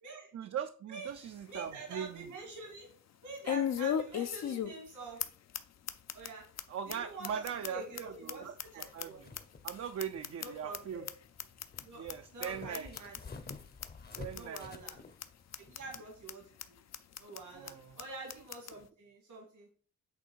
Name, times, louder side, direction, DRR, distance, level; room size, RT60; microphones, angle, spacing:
voice 1, 0.3-2.3 6.7-9.3 9.6-11.1 11.9-12.9 14.2-14.7 17.5-18.0, right 8 dB, 55° right, 0.5 m, -40 dB
sound 1, 1.1-1.2 1.7-1.8 3.4-4.9 5.2-5.3 5.5-5.6 5.9-6.3 6.6-6.7 6.9-7.0 7.2-9.4 9.7-10.8 11.1-11.2 11.4-11.8 12.1-12.2 12.4-12.5 12.7-13.2 13.5-13.6 13.8-13.9 14.1-14.6 14.9-15.0 15.2-15.3 15.5-16.0 16.3-16.4 16.6-16.7 16.9-17.4 17.7-17.8 18.0-18.1 18.3-18.7, left 9 dB, 60° left, 0.6 m, -36 dB
voice 2, 1.5-2.9 3.2-5.2 6.1-6.5 6.9-9.2 10.4-11.1 11.8-12.0 12.3-13.2 14.3-15.0 15.6-16.7 17.2-19.7, right 3 dB, 80° right, 2.0 m, -46 dB
sound 2, 8.8-16.0, left 4 dB, 30° left, 0.8 m, -51 dB
8.3 x 3.3 x 4.6 m
wide cardioid pair, 125°, 30 cm